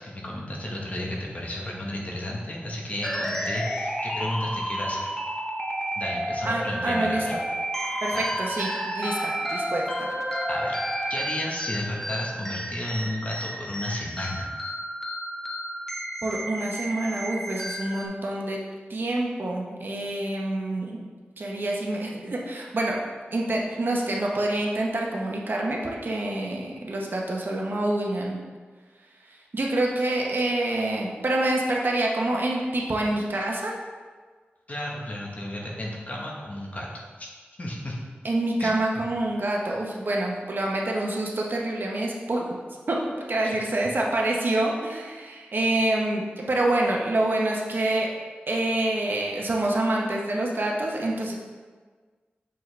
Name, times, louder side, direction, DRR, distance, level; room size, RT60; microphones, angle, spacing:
voice 1, 0.0-5.1 6.0-7.3 8.1-8.2 10.5-10.8 11.1-14.5 34.7-36.9 37.2-37.3 37.6-38.0 38.6-38.8 43.4-43.6, left 1 dB, 40° left, -2 dB, 1.1 m, -33 dB
sound 1, 3.0-18.1, equal, 5° left, 0.7 m, -31 dB
voice 2, 6.4-7.4 8.0-10.1 16.2-18.6 18.9-21.0 21.4-23.0 23.3-28.4 29.5-33.8 38.2-42.5 42.9-43.0 43.3-48.1 48.5-51.3, right 1 dB, 60° right, -1 dB, 0.9 m, -27 dB
6.7 x 4.6 x 3.3 m, 1.5 s
wide cardioid pair, 95°, 4 cm